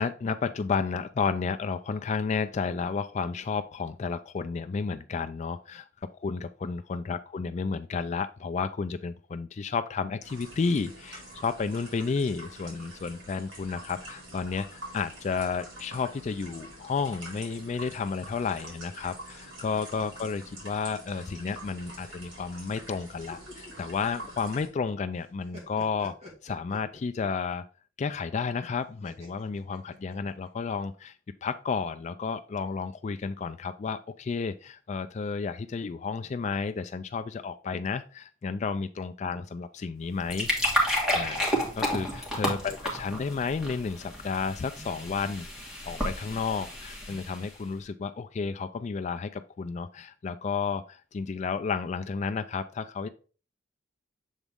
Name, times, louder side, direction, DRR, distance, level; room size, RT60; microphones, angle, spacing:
voice 1, 0.0-5.8 6.1-27.6 28.0-40.5 41.1-41.4 41.7-45.5 45.9-53.1, left 5 dB, 35° left, 10 dB, 0.3 m, -32 dB
sound 1, 10.2-24.7, right 1 dB, 65° right, 2.8 m, -46 dB
sound 2, 23.1-24.9 25.2-27.4 29.0-30.5, left 2 dB, 35° right, 1.9 m, -49 dB
sound 3, 40.0-47.6, equal, 5° right, 1.7 m, -31 dB
7.2 x 4.0 x 3.5 m, 0.36 s
head